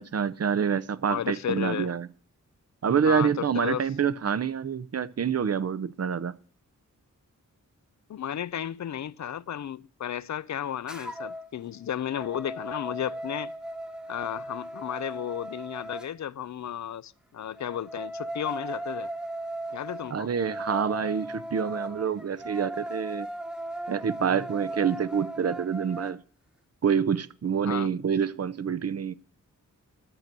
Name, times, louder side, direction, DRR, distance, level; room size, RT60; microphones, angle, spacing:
voice 1, 0.0-2.1 2.8-6.3 20.1-23.3 23.9-26.2 26.8-29.1, right 7 dB, 50° right, 0.6 m, -27 dB
voice 2, 1.1-1.9 3.1-3.9 8.1-13.5 14.1-19.1 19.7-20.3 27.6-27.9, left 10 dB, 60° left, 0.4 m, -33 dB
sound 1, 10.9-11.5 11.9-16.1 17.6-26.1, right 1 dB, 5° right, 1.0 m, -37 dB
12.0 x 6.8 x 7.5 m
wide cardioid pair, 155°, 32 cm